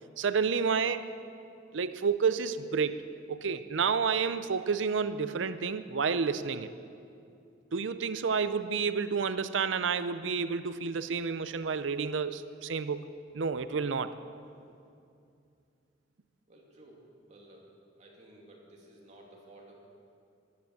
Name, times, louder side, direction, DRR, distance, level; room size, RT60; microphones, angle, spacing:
voice 1, 0.2-1.0 1.7-3.0 3.3-6.7 7.7-13.0 13.3-14.1, right 5 dB, 85° right, 12 dB, 0.6 m, -30 dB
voice 2, 16.5-17.7 18.0-19.7, right 1 dB, 40° right, -2 dB, 2.8 m, -54 dB
14.5 x 12.0 x 7.3 m, 2.5 s
head